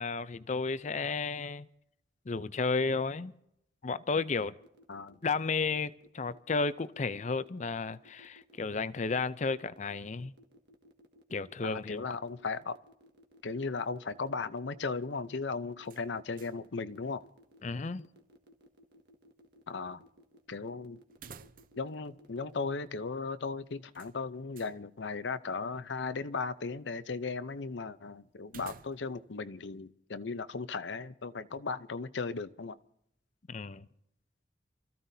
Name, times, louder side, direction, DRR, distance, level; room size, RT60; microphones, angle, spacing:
voice 1, 0.0-1.7 2.3-3.3 3.8-4.5 5.2-10.3 11.3-12.0 17.6-18.0 33.5-33.9, left 4 dB, 40° left, 0.5 m, -33 dB
sound 1, 4.6-23.0, equal, 65° right, 1.7 m, -59 dB
voice 2, 11.6-12.7 13.4-17.2 19.7-20.0 20.5-21.0 21.8-32.8, left 4 dB, 80° left, 0.7 m, -36 dB
sound 2, 15.8-16.7 17.0-17.1 21.1-21.9 22.2-22.3 23.9-24.8 28.4-29.3, right 6 dB, 50° right, 0.6 m, -52 dB
29.0 x 14.5 x 2.7 m
head